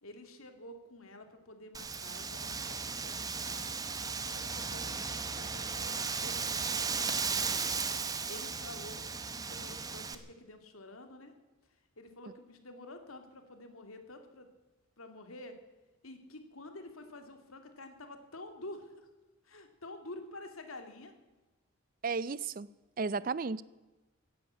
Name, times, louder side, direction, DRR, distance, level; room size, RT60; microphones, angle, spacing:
voice 1, 0.0-3.8 4.2-7.7 8.3-11.3 12.0-14.5 15.0-15.5 16.0-19.1 19.4-21.1 23.2-23.3, left 2 dB, 85° left, 7 dB, 2.3 m, -49 dB
Wind, 1.7-10.1, right 5 dB, 15° right, 0.9 m, -36 dB
voice 2, 22.0-22.7 23.0-23.6, right 4 dB, 40° right, 19 dB, 0.5 m, -33 dB
16.0 x 10.5 x 8.5 m, 1.1 s
head